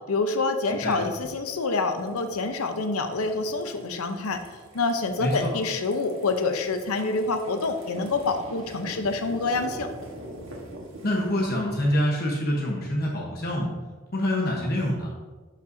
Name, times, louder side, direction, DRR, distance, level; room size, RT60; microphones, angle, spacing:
voice 1, 0.1-4.4 4.7-9.9, left 3 dB, 85° left, 6 dB, 0.7 m, -27 dB
sound 1, 0.6-11.4, right 1 dB, 65° right, 1.3 m, -44 dB
voice 2, 5.2-5.5 11.0-13.7 14.1-15.1, equal, 45° left, -2 dB, 1.0 m, -26 dB
11.5 x 5.4 x 2.7 m, 1.3 s
head